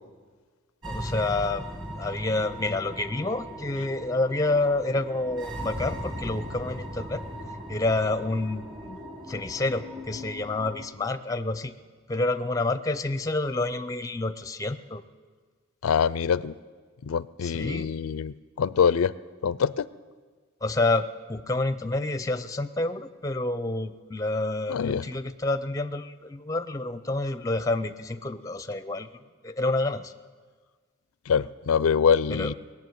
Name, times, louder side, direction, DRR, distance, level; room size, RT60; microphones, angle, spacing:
voice 1, 0.8-1.6 2.0-7.2 7.7-9.0 9.3-11.7 12.1-15.0 17.4-18.0 20.6-29.1 29.4-30.1 32.3-32.5, left 2 dB, 15° left, 12 dB, 0.5 m, -28 dB
sound 1, 0.8-10.9, equal, 25° right, 1.8 m, -38 dB
voice 2, 15.8-16.5 17.0-19.1 19.4-19.9 24.7-25.0 31.3-32.5, left 6 dB, 90° left, 18 dB, 0.4 m, -24 dB
20.0 x 7.3 x 9.4 m, 1.5 s
head